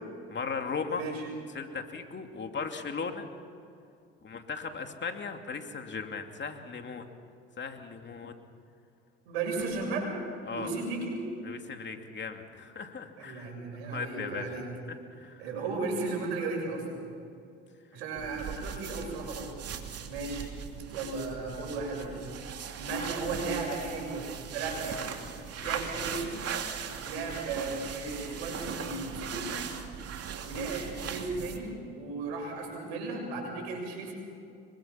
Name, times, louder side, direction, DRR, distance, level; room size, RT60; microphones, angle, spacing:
voice 1, 0.3-1.1 1.5-3.3 4.2-7.0 7.6-8.3 10.5-10.7 11.4-13.5 13.9-14.5 14.9-15.4 25.6-25.8, left 5 dB, 35° left, 5 dB, 2.8 m, -37 dB
voice 2, 0.9-1.2 9.3-10.2 10.5-11.2 13.2-14.7 15.4-17.0 17.9-19.5 20.1-20.5 20.9-22.2 22.8-25.0 25.6-26.4 27.0-29.5 30.4-34.1, right 3 dB, 85° right, 1 dB, 7.0 m, -35 dB
sound 1, 18.2-31.7, right 7 dB, 50° right, 2.9 m, -39 dB
26.5 x 23.5 x 5.9 m, 2.5 s
hypercardioid pair, 70°, 31 cm